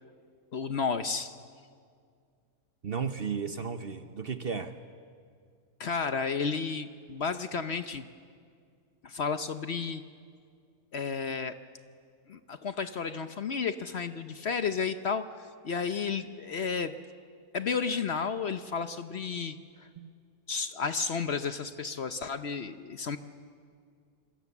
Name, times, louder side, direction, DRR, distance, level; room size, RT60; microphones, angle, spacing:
voice 1, 0.5-1.4 5.8-8.0 9.0-10.0 10.9-11.6 12.3-16.9 17.5-19.9 20.5-23.2, left 5 dB, 50° left, 10 dB, 0.9 m, -32 dB
voice 2, 2.8-4.7 20.0-20.1, right 6 dB, 45° right, 9 dB, 0.9 m, -34 dB
26.5 x 24.0 x 7.2 m, 2.1 s
omnidirectional pair, 1.6 m